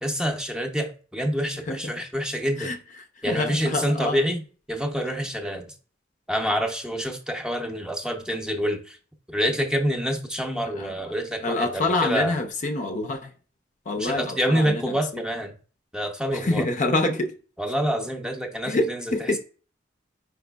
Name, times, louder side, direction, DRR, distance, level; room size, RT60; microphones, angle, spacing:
voice 1, 0.0-2.7 3.2-4.4 4.7-5.6 6.3-9.0 9.3-12.4 13.9-15.5 15.9-16.7 17.6-19.4, equal, 5° right, 0.6 m, -27 dB
voice 2, 3.3-4.2 10.8-10.9 11.4-13.3 13.9-15.2 16.3-17.3 18.7-19.4, left 2 dB, 40° left, 0.5 m, -26 dB
4.9 x 4.7 x 2.2 m
head